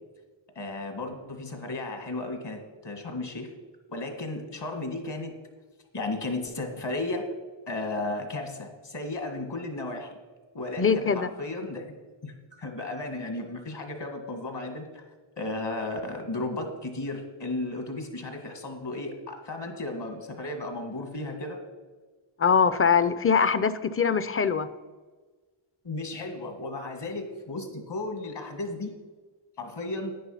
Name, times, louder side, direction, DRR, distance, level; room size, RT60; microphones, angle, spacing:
voice 1, 0.6-3.5 3.9-5.4 5.9-7.3 7.7-10.2 10.5-11.8 12.2-15.1 15.4-21.6 25.8-28.9 29.6-30.1, left 2 dB, 60° left, 5 dB, 2.1 m, -34 dB
voice 2, 10.8-11.3 22.4-24.7, left 6 dB, 30° left, 13 dB, 0.5 m, -22 dB
10.5 x 9.7 x 5.7 m, 1.3 s
wide cardioid pair, 125°, 48 cm